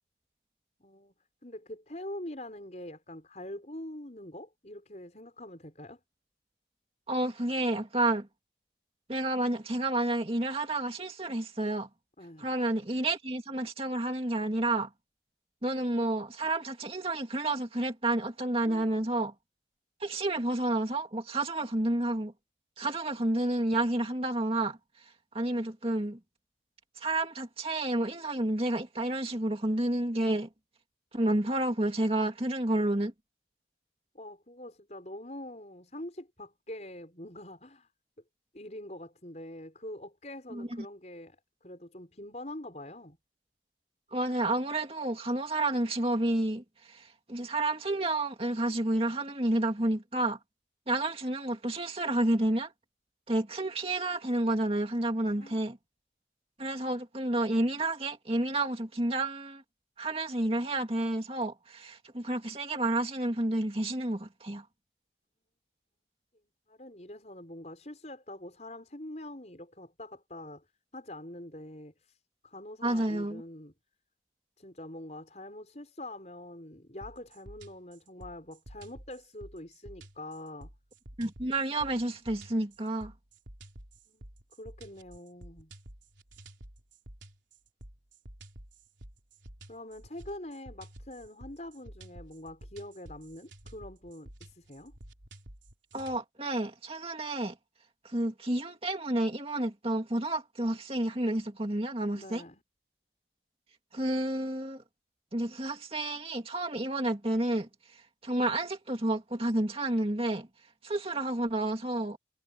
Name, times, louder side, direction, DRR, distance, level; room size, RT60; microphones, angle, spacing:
voice 1, 0.8-1.1 1.4-6.0 12.2-12.5 18.6-18.9 34.1-37.9 38.5-41.4 41.6-43.2 55.3-55.6 66.7-70.6 70.9-72.2 72.4-73.7 74.6-80.7 84.1-84.3 84.6-85.7 89.7-94.9 102.1-102.6, left 1 dB, 40° left, 6.3 m, -44 dB
voice 2, 7.1-8.3 9.1-11.9 12.4-14.9 15.6-19.3 20.0-22.3 22.8-24.8 25.3-26.2 27.0-30.5 31.1-33.1 40.5-40.7 44.1-50.4 50.9-52.7 53.3-55.8 56.6-59.6 60.0-64.6 72.8-73.4 81.2-83.1 95.9-97.5 98.0-102.4 103.9-104.8 105.3-107.7 108.2-110.5 110.8-112.2, right 1 dB, 30° right, 2.3 m, -30 dB
sound 1, 77.0-96.2, right 1 dB, 90° right, 3.8 m, -50 dB
head